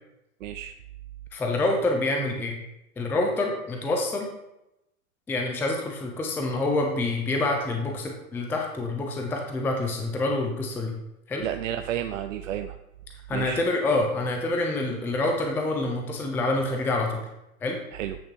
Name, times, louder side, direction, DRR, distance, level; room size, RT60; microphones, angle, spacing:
voice 1, 0.4-0.7 11.4-12.8 13.3-13.6 17.9-18.2, right 10 dB, 60° right, 7 dB, 0.6 m, -31 dB
voice 2, 1.3-2.6 3.0-4.3 5.3-10.9 11.3-11.4 13.3-17.2 17.6-17.8, left 2 dB, 5° left, 2 dB, 0.5 m, -27 dB
8.3 x 6.4 x 2.9 m, 0.88 s
hypercardioid pair, 115°, 43 cm